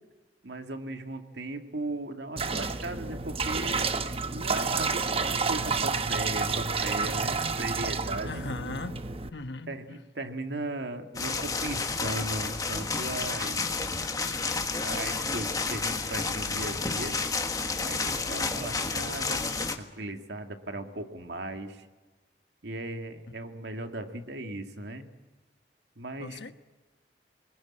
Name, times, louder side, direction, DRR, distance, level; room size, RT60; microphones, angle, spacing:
voice 1, 0.4-3.9 4.3-8.4 9.7-13.9 14.8-17.2 17.8-19.5 19.8-21.9 22.6-25.1 26.0-26.5, right 2 dB, 80° right, 5 dB, 2.1 m, -37 dB
sound 1, 2.4-9.3, right 4 dB, 35° right, 1.0 m, -30 dB
voice 2, 8.2-9.0 9.3-10.0 26.2-26.5, left 3 dB, 80° left, 10 dB, 1.2 m, -38 dB
sound 2, 11.1-19.8, left 4 dB, 20° left, 1.5 m, -31 dB
24.5 x 20.5 x 8.8 m, 1.2 s
head